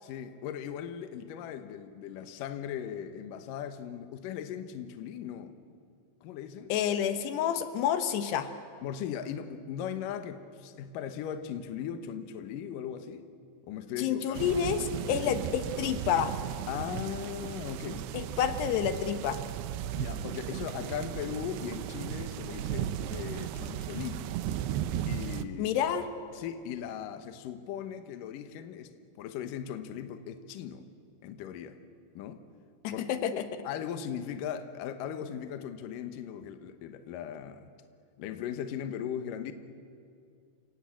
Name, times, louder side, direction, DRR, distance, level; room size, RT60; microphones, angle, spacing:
voice 1, 0.0-5.6 6.2-6.8 8.8-13.3 13.7-14.6 15.2-15.4 16.7-18.1 19.9-24.3 25.1-25.7 26.3-30.9 31.2-31.8 32.1-32.4 32.9-33.0 33.6-37.7 38.2-39.5, left 9 dB, 70° left, 9 dB, 2.4 m, -38 dB
voice 2, 6.7-8.5 14.0-16.3 18.1-19.4 25.6-26.1 32.8-33.5, left 9 dB, 85° left, 9 dB, 3.3 m, -29 dB
sound 1, 14.3-25.5, right 10 dB, 85° right, 2.9 m, -36 dB
29.0 x 17.0 x 8.9 m, 2.3 s
omnidirectional pair, 4.7 m